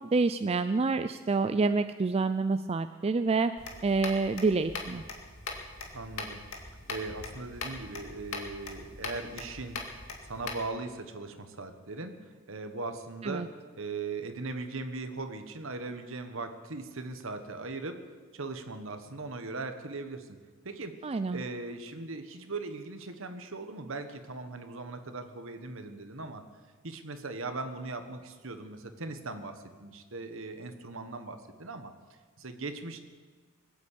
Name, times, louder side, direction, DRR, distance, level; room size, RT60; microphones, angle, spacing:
voice 1, 0.0-3.5 3.8-5.0 13.2-13.5 21.0-21.4, right 3 dB, 30° right, 10 dB, 0.4 m, -27 dB
sound 1, 3.6-10.7, left 3 dB, 80° left, 2.2 m, -41 dB
voice 2, 5.9-6.4 6.9-9.8 10.2-13.5 13.8-18.0 18.3-20.4 20.6-20.9 21.3-26.4 26.8-31.9 32.4-33.0, right 3 dB, 65° right, 8 dB, 1.4 m, -39 dB
20.5 x 8.5 x 8.4 m, 1.5 s
head